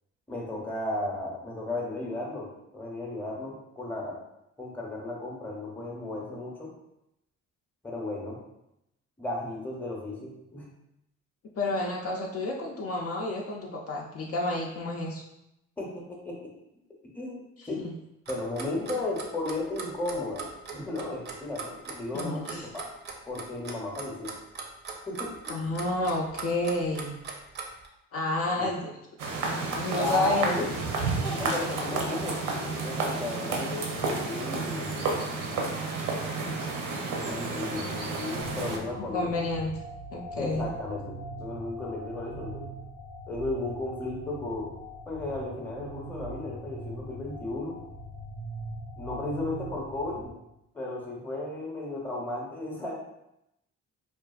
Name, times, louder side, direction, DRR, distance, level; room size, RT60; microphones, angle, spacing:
voice 1, 0.3-4.2 4.6-6.7 7.8-8.4 9.2-10.7 15.8-16.5 17.1-17.8 18.3-22.9 23.3-24.3 25.1-25.6 28.5-28.7 30.0-30.7 31.2-32.4 32.8-34.9 37.2-39.5 40.4-42.7 43.3-44.7 45.1-47.8 48.9-50.3 50.7-52.9, left 2 dB, 5° left, -2 dB, 0.6 m, -34 dB
voice 2, 11.6-15.2 17.6-17.7 22.1-22.7 25.5-27.2 28.1-28.9 29.5-30.6 31.2-31.5 39.0-39.7 40.1-40.7, left 2 dB, 50° left, -1 dB, 0.4 m, -30 dB
Clock, 18.3-27.9, right 5 dB, 35° right, 0.4 m, -39 dB
sound 1, 29.2-38.8, right 3 dB, 85° right, 0.6 m, -31 dB
sound 2, 38.4-50.3, right 1 dB, 90° left, 0.7 m, -42 dB
2.4 x 2.3 x 2.3 m, 0.85 s
cardioid pair, 90°, 30 cm